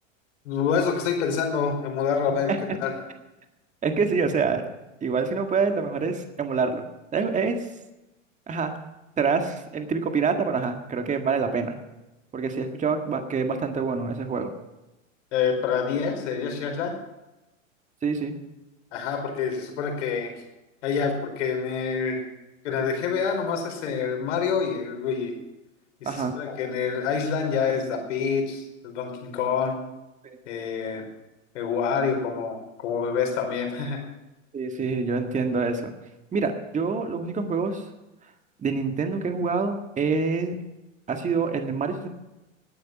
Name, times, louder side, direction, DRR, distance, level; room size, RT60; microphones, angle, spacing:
voice 1, 0.4-2.5 2.8-2.9 15.3-17.0 18.9-20.3 20.8-22.2 22.6-25.3 26.0-28.6 28.9-29.8 30.5-31.1 31.5-34.0, left 6 dB, 65° left, 4 dB, 4.7 m, -27 dB
voice 2, 3.8-4.6 5.0-6.9 7.1-7.6 8.5-8.7 9.2-11.7 12.3-14.5 18.0-18.4 26.0-26.3 30.2-30.4 34.5-35.9 36.3-37.8 38.6-40.5 41.1-42.1, right 5 dB, 20° right, 6 dB, 1.8 m, -26 dB
18.5 x 9.5 x 6.0 m, 1.0 s
hypercardioid pair, 110°, 40 cm